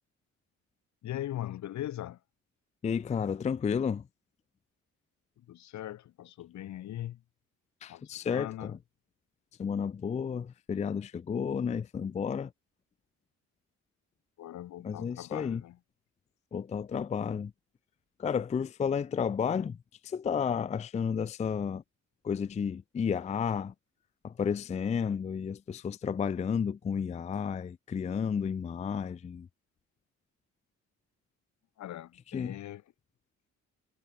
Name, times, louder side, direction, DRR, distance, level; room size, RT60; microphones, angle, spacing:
voice 1, 1.0-2.2 5.4-7.2 7.9-8.8 14.4-15.8 31.8-32.8, left 13 dB, 70° left, 1.2 m, -40 dB
voice 2, 2.8-4.0 7.8-8.8 9.6-12.5 14.8-15.6 16.5-17.5 18.2-19.8 20.0-21.8 22.2-23.7 24.2-29.5 32.3-32.6, left 7 dB, 25° left, 0.4 m, -32 dB
cardioid pair, 90°, 30 cm